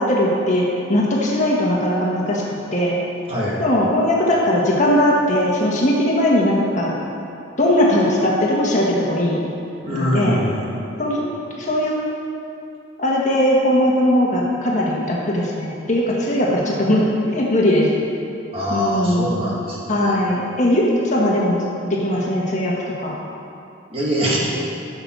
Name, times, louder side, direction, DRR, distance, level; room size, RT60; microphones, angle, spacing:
voice 1, 0.0-2.4 2.7-3.0 3.6-6.9 7.6-9.4 9.9-10.4 11.0-11.2 11.6-11.9 13.0-17.9 18.7-19.4 19.9-23.1, left 1 dB, 40° left, -3 dB, 1.6 m, -19 dB
voice 2, 9.8-10.6 18.5-20.2 23.9-24.4, equal, 30° right, -6 dB, 2.1 m, -23 dB
13.5 x 7.1 x 4.7 m, 2.7 s
head